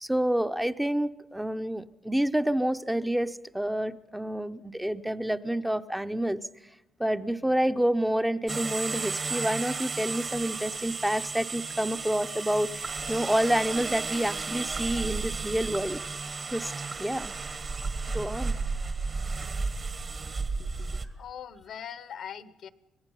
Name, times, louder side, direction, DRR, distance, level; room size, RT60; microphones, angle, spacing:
voice 1, 0.0-6.5 7.0-16.0 16.5-16.7 17.0-17.3 18.1-18.6, right 1 dB, 5° right, 9 dB, 0.7 m, -28 dB
sound 1, 8.5-21.1, right 4 dB, 40° right, 1.6 m, -33 dB
voice 2, 21.2-22.7, left 8 dB, 65° left, 16 dB, 1.0 m, -41 dB
25.5 x 18.5 x 5.6 m, 0.99 s
cardioid pair, 90°, 0 cm